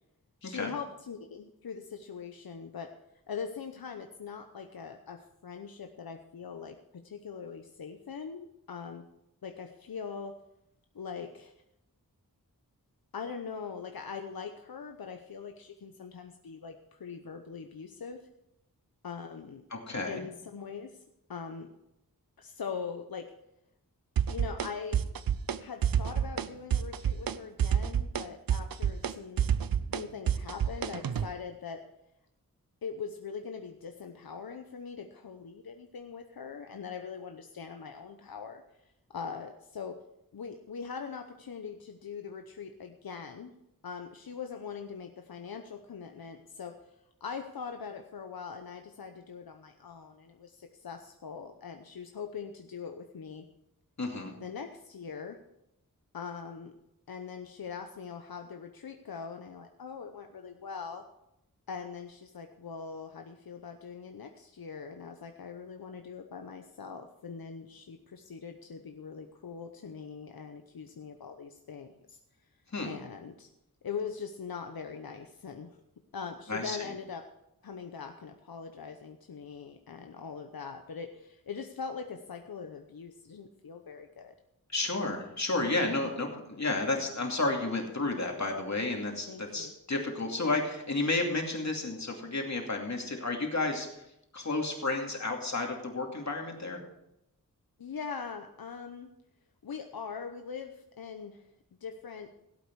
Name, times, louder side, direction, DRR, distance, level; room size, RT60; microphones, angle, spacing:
voice 1, 0.4-2.9 3.3-9.1 9.4-10.4 10.9-11.5 13.1-18.2 19.0-19.6 20.1-21.0 21.3-21.7 22.4-23.3 24.3-25.0 25.6-29.5 29.9-31.8 32.8-38.6 39.1-40.0 40.3-43.5 43.8-53.4 54.4-55.4 56.1-56.7 57.1-61.0 61.7-72.2 72.8-73.5 73.8-75.8 76.1-77.2 77.6-84.3 86.0-86.1 89.3-89.7 97.8-99.1 99.6-101.4 101.8-102.3, left 6 dB, 85° left, 5 dB, 0.9 m, -42 dB
voice 2, 19.7-20.2 54.0-54.4 72.7-73.0 76.5-76.9 84.7-94.0 94.3-96.8, left 2 dB, 50° left, 2 dB, 2.5 m, -32 dB
sound 1, 24.2-24.7 24.9-25.6 25.8-26.5 26.7-27.3 27.6-31.3, right 8 dB, 75° right, 0.6 m, -28 dB
17.0 x 8.4 x 4.7 m, 0.83 s
wide cardioid pair, 90°, 35 cm